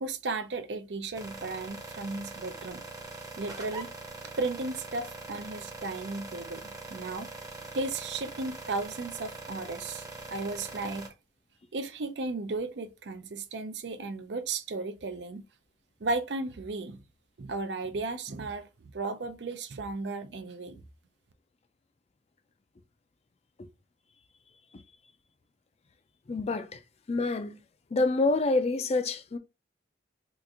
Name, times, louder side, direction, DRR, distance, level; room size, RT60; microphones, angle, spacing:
voice 1, 0.0-2.8 3.4-3.9 4.4-7.3 7.7-10.0 10.3-11.1 11.7-15.4 16.0-17.0 17.4-18.7 18.9-20.8, right 3 dB, 70° right, 0.5 m, -35 dB
sound 1, 1.1-11.1, right 3 dB, 20° right, 0.8 m, -43 dB
voice 2, 26.3-26.8 27.1-27.6 27.9-29.4, left 3 dB, 35° left, 0.4 m, -27 dB
2.9 x 2.5 x 3.5 m
head